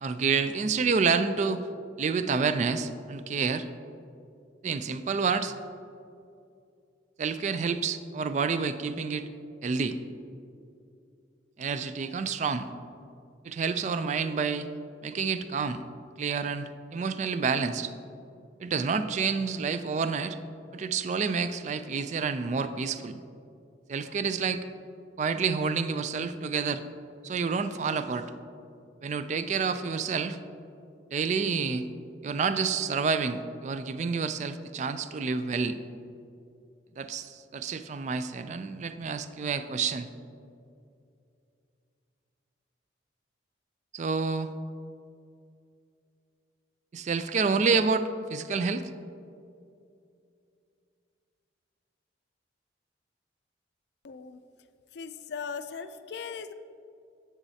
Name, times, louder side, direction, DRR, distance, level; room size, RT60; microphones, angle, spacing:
voice 1, 0.0-1.7 2.0-3.7 4.6-5.5 7.2-9.3 9.6-10.0 11.6-12.7 13.4-14.7 15.0-15.8 16.2-17.9 18.6-20.4 20.7-23.2 23.9-24.6 25.2-26.8 27.2-28.3 29.0-30.4 31.1-31.9 32.2-35.8 37.0-40.1 43.9-44.5 46.9-48.9, right 5 dB, 40° right, 11 dB, 0.3 m, -28 dB
voice 2, 54.0-54.4 54.9-56.5, left 6 dB, 60° left, 10 dB, 0.4 m, -38 dB
10.0 x 8.3 x 2.8 m, 2.5 s
head